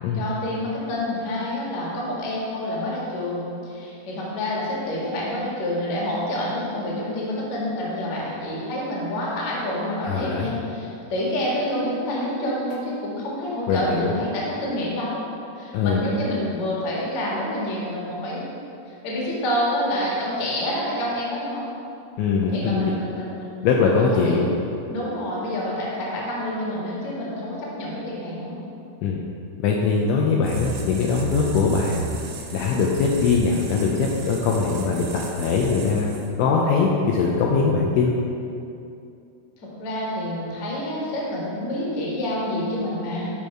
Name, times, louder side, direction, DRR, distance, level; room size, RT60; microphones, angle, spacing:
voice 1, 0.1-15.2 15.6-18.6 18.9-21.6 22.5-23.6 23.9-24.5 24.9-28.6 39.6-43.3, left 1 dB, 55° left, -5 dB, 2.0 m, -28 dB
voice 2, 10.0-10.5 13.7-14.1 15.7-16.0 22.2-22.9 23.6-24.5 29.0-29.2 29.6-32.1 32.5-36.1 36.4-38.1, left 5 dB, 85° left, -2 dB, 2.7 m, -21 dB
sound 1, 30.4-36.5, right 5 dB, 80° right, 1.9 m, -34 dB
12.0 x 5.4 x 4.5 m, 2.6 s
omnidirectional pair, 6.0 m